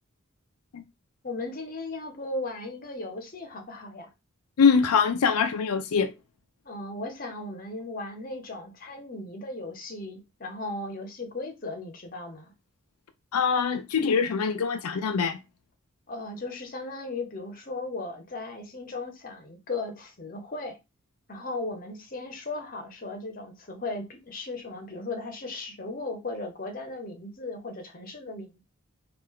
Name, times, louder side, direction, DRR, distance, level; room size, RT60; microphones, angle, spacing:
voice 1, 1.2-4.1 6.6-12.5 16.1-20.8 21.3-28.6, left 2 dB, 40° left, 0.8 m, -36 dB
voice 2, 4.6-6.1 13.3-15.4, left 6 dB, 90° left, 0.4 m, -23 dB
3.2 x 2.4 x 3.6 m
head